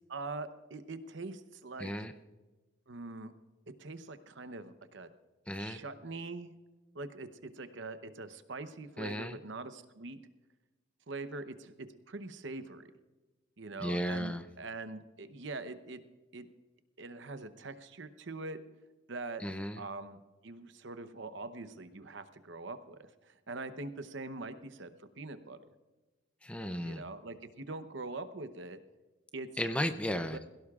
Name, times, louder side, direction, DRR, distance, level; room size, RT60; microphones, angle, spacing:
voice 1, 0.0-2.1 2.9-3.3 3.8-5.1 5.6-6.5 6.9-10.2 11.1-12.8 13.6-16.0 16.3-16.5 17.0-18.6 19.1-19.4 19.8-25.6 26.8-28.8 29.3-29.5 30.3-30.4, right 3 dB, 65° right, 11 dB, 0.8 m, -43 dB
voice 2, 1.8-2.1 5.5-5.8 9.0-9.4 13.8-14.5 19.4-19.8 26.4-27.0 29.6-30.4, equal, 5° left, 9 dB, 0.5 m, -34 dB
21.5 x 16.5 x 2.4 m, 1.2 s
head